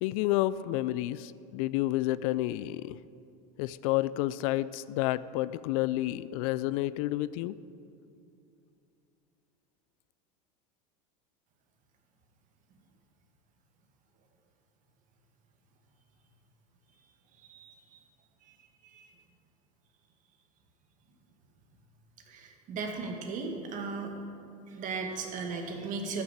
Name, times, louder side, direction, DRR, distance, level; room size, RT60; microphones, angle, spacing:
voice 1, 0.0-3.0 3.6-7.6, left 16 dB, 65° left, 17 dB, 0.4 m, -30 dB
voice 2, 17.5-18.0 18.8-19.1 22.3-24.1 24.7-26.2, right 4 dB, 40° right, 3 dB, 2.0 m, -37 dB
12.5 x 6.6 x 8.4 m, 2.6 s
supercardioid pair, 120°, 19 cm